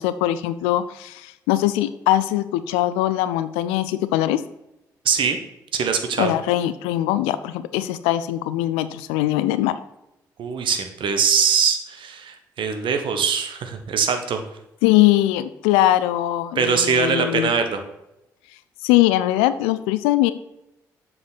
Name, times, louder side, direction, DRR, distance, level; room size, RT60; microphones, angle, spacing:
voice 1, 0.0-4.4 6.2-9.8 14.8-17.5 18.8-20.3, left 14 dB, 75° left, 13 dB, 0.4 m, -21 dB
voice 2, 5.0-5.4 5.7-6.3 10.4-14.4 16.5-17.8, right 6 dB, 60° right, 6 dB, 1.1 m, -22 dB
7.5 x 6.1 x 4.1 m, 0.88 s
hypercardioid pair, 40°, 10 cm